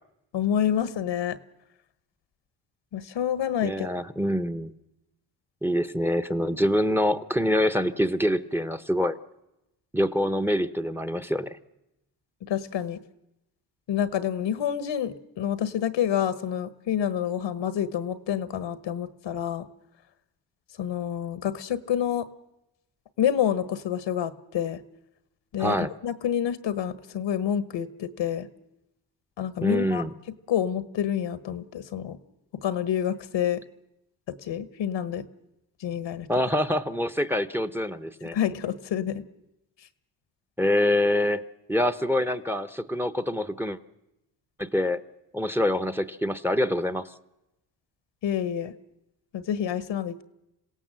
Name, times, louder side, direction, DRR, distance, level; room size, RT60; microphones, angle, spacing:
voice 1, 0.3-1.4 2.9-3.9 12.5-13.0 13.9-19.6 20.8-22.3 23.2-24.8 25.5-28.5 29.4-30.0 30.5-32.2 32.6-33.6 34.4-35.2 35.8-36.3 38.3-39.2 48.2-48.7 49.3-50.2, left 9 dB, 75° left, 14 dB, 1.3 m, -28 dB
voice 2, 3.6-4.7 5.6-9.2 9.9-11.6 25.6-25.9 29.6-30.1 36.3-38.4 40.6-41.4 41.7-43.8 44.6-45.0 45.3-47.1, left 1 dB, 5° right, 13 dB, 1.0 m, -25 dB
26.5 x 17.0 x 7.6 m, 0.92 s
cardioid pair, 75°, 44 cm